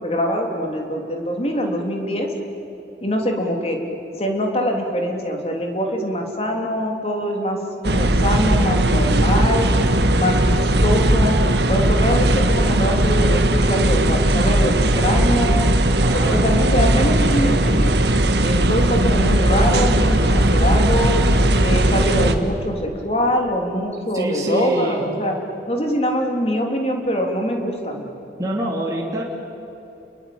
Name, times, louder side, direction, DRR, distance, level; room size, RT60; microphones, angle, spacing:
voice 1, 0.0-2.3 3.0-3.8 4.2-7.6 7.8-9.7 10.1-11.4 11.7-15.7 16.1-17.9 18.4-21.2 21.6-25.3 25.7-28.1, equal, 35° left, 2 dB, 3.5 m, -23 dB
sound 1, 7.8-22.4, right 1 dB, 70° right, 1.7 m, -17 dB
voice 2, 16.0-16.4 24.1-25.0 28.4-29.2, right 1 dB, 20° right, -3 dB, 3.0 m, -25 dB
30.0 x 22.0 x 8.8 m, 2.9 s
head